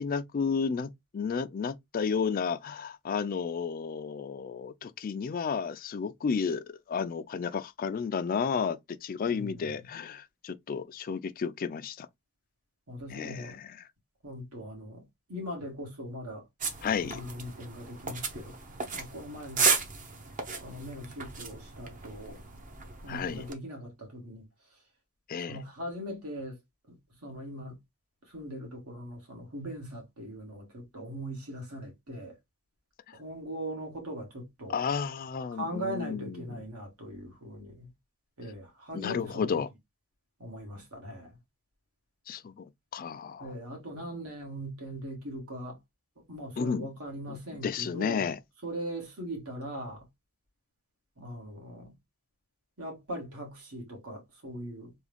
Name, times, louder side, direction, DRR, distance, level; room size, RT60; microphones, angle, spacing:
voice 1, 0.0-12.1 13.1-13.8 16.8-17.2 23.1-23.4 25.3-25.6 33.1-33.2 34.7-36.5 38.9-39.7 42.3-42.7 42.9-43.5 46.6-46.9 47.3-47.4 47.6-48.4, left 6 dB, 40° left, 0.3 m, -32 dB
voice 2, 9.3-9.9 12.9-13.6 14.2-16.4 17.0-18.5 18.9-19.7 20.6-22.4 23.0-24.5 25.5-26.6 26.9-27.8 28.3-32.4 33.1-34.7 35.5-37.9 38.4-39.5 40.4-41.4 43.4-45.8 46.3-48.3 48.6-50.1 51.2-51.9 52.8-54.9, equal, 80° right, 1.8 m, -40 dB
sound 1, 16.6-23.5, right 5 dB, 35° right, 0.7 m, -34 dB
3.6 x 2.3 x 3.3 m
head